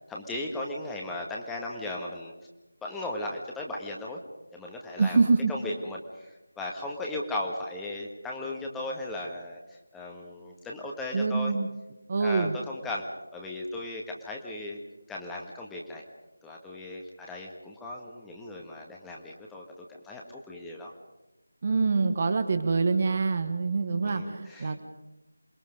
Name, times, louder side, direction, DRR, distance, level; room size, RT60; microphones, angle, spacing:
voice 1, 0.1-2.3 2.8-4.2 4.5-5.2 5.5-11.5 12.2-13.0 13.3-14.8 15.1-16.0 16.4-19.6 19.9-20.9 24.0-24.7, left 2 dB, 5° left, -1 dB, 1.5 m, -37 dB
voice 2, 5.0-5.5 11.1-11.7 12.1-12.6 21.6-24.8, right 4 dB, 35° right, 9 dB, 1.3 m, -25 dB
27.5 x 21.0 x 5.3 m, 1.0 s
figure-of-eight pair, 165°, 0 cm